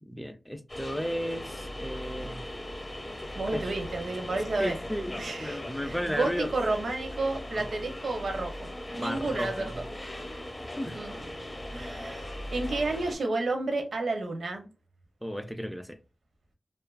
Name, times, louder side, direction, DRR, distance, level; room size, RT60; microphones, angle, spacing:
voice 1, 0.0-2.4 3.5-3.7 4.6-6.5 7.5-7.7 8.9-9.8 10.7-11.0 15.2-16.0, equal, ahead, 0.3 m, -34 dB
sound 1, 0.7-13.2, left 1 dB, 30° left, 0.7 m, -39 dB
voice 2, 3.4-4.8 5.2-5.6 5.8-9.7 10.9-14.7, right 2 dB, 75° right, 0.6 m, -31 dB
2.5 x 2.3 x 2.3 m
wide cardioid pair, 105°, 0 cm